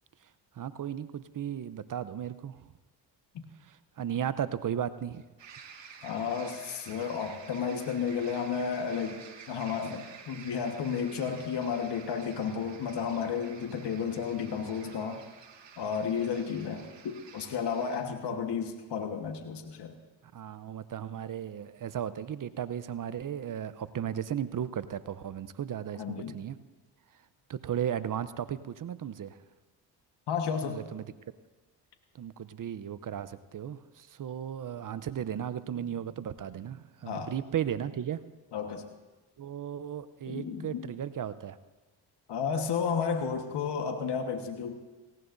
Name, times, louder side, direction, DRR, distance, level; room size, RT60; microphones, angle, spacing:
voice 1, 0.5-2.6 3.6-5.2 18.3-18.4 20.3-26.6 27.5-29.4 30.6-31.1 32.1-38.2 39.4-41.6, right 9 dB, 45° right, 14 dB, 0.7 m, -35 dB
sound 1, 5.4-18.0, right 6 dB, 65° right, 2.4 m, -51 dB
voice 2, 6.0-9.2 9.5-15.2 15.8-20.0 25.9-26.4 30.3-30.9 37.0-37.3 38.5-38.8 40.3-40.8 42.3-44.7, left 6 dB, 60° left, 5 dB, 1.4 m, -32 dB
18.0 x 17.5 x 2.6 m, 1.2 s
supercardioid pair, 65°, 46 cm